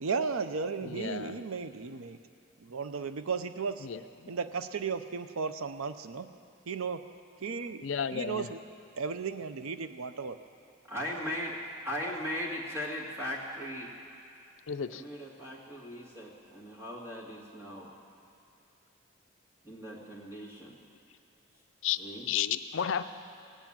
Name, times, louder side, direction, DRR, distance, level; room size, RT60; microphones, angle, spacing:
voice 1, 0.0-2.2 2.6-3.9 4.3-6.3 6.7-7.0 7.4-7.8 8.1-8.6 9.0-10.4, right 5 dB, 90° right, 11 dB, 0.6 m, -34 dB
voice 2, 0.8-1.4 3.8-4.3 7.8-8.5 14.7-15.0 21.8-22.0 22.3-23.0, left 8 dB, 70° left, 10 dB, 0.5 m, -32 dB
voice 3, 10.9-11.6 11.8-13.9 14.9-17.9 19.6-20.7 22.0-22.3, equal, 15° right, -4 dB, 2.1 m, -38 dB
17.5 x 8.3 x 8.7 m, 2.6 s
head